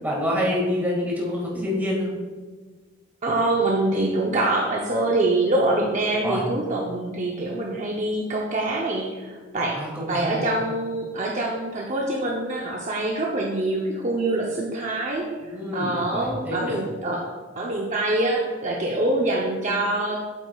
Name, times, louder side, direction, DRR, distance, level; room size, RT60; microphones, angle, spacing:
voice 1, 0.0-2.1 6.2-6.4 9.7-10.4 15.4-16.8, left 1 dB, 10° right, -4 dB, 1.8 m, -27 dB
voice 2, 3.2-9.8 10.1-15.2 15.7-17.3 17.6-20.2, right 2 dB, 40° right, -1 dB, 0.6 m, -25 dB
8.1 x 7.6 x 2.3 m, 1.4 s
head